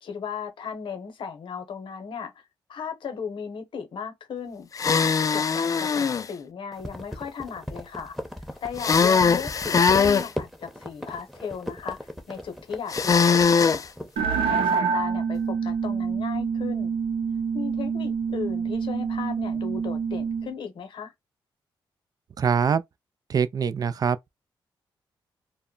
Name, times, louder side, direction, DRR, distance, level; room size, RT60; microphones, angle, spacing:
voice 1, 0.0-2.4 2.7-4.7 5.3-8.2 8.6-12.0 12.3-13.7 14.4-17.0 17.5-21.1, left 6 dB, 65° left, 0.8 m, -36 dB
sound 1, 4.7-6.2 8.8-10.3 12.9-13.8, left 6 dB, 40° left, 0.3 m, -21 dB
sound 2, 6.7-14.1, equal, ahead, 0.8 m, -36 dB
sound 3, 14.2-20.5, right 6 dB, 85° right, 0.7 m, -27 dB
voice 2, 22.4-22.8 23.3-24.3, right 6 dB, 45° right, 0.3 m, -24 dB
2.1 x 2.1 x 3.7 m
cardioid pair, 60°, 9 cm